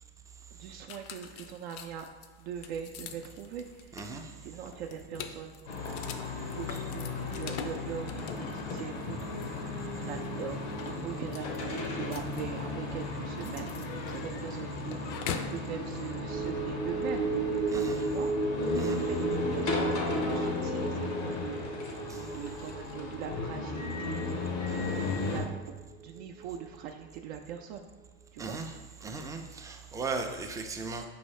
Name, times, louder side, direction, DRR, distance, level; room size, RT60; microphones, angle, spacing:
voice 1, 0.5-2.1 2.4-4.0 4.4-5.6 6.5-6.7 6.9-13.7 14.1-17.4 18.0-18.3 19.0-22.0 22.3-27.9 28.3-28.6, right 8 dB, 70° right, 3 dB, 0.5 m, -42 dB
sound 1, 0.9-15.6, left 7 dB, 50° left, 0.5 m, -44 dB
voice 2, 3.9-4.3 6.7-6.8 17.7-18.1 18.8-19.0 22.1-22.2 28.4-28.8 29.0-31.0, right 4 dB, 10° right, 4 dB, 0.3 m, -37 dB
sound 2, 5.7-25.4, left 3 dB, 90° left, 0.9 m, -35 dB
sound 3, 16.2-26.8 27.2-27.3, right 3 dB, 35° right, 0.7 m, -35 dB
5.3 x 2.8 x 3.1 m, 1.3 s
hypercardioid pair, 90°, 33 cm